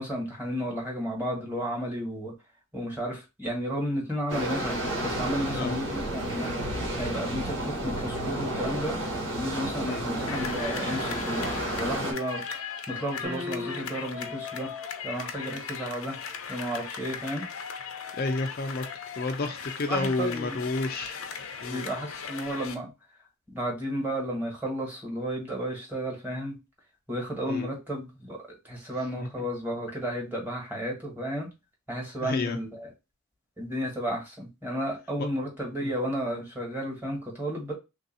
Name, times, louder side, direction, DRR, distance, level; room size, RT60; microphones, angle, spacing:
voice 1, 0.0-2.3 2.7-6.5 7.0-9.0 9.3-11.4 11.8-14.7 15.0-16.2 16.5-17.4 19.9-20.7 21.7-22.9 23.5-26.6 27.1-31.5 31.9-32.9 33.6-37.7, equal, 10° right, -1 dB, 1.4 m, -33 dB
sound 1, 4.3-12.1, right 1 dB, 65° right, 1.4 m, -31 dB
sound 2, 10.3-22.8, left 6 dB, 85° left, 0.6 m, -38 dB
sound 3, 13.2-14.3, left 2 dB, 30° right, 1.1 m, -37 dB
voice 2, 18.2-18.8 19.1-21.2 21.6-21.8 27.5-27.7 29.2-29.5 32.2-32.6 35.8-35.9, left 3 dB, 45° left, 4 dB, 0.4 m, -30 dB
3.3 x 2.7 x 4.0 m, 0.26 s
head